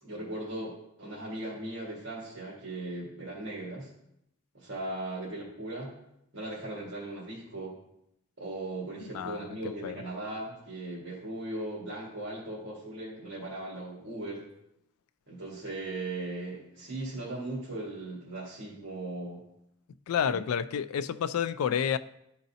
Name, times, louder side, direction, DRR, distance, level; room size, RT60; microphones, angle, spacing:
voice 1, 0.0-3.9 4.5-5.9 6.3-7.8 8.4-14.5 15.3-19.4 20.2-20.4, right 2 dB, 60° right, -5 dB, 1.7 m, -38 dB
voice 2, 9.1-9.5 9.8-10.0 20.1-22.0, left 8 dB, 85° left, 12 dB, 0.3 m, -29 dB
11.5 x 3.9 x 2.7 m, 0.80 s
head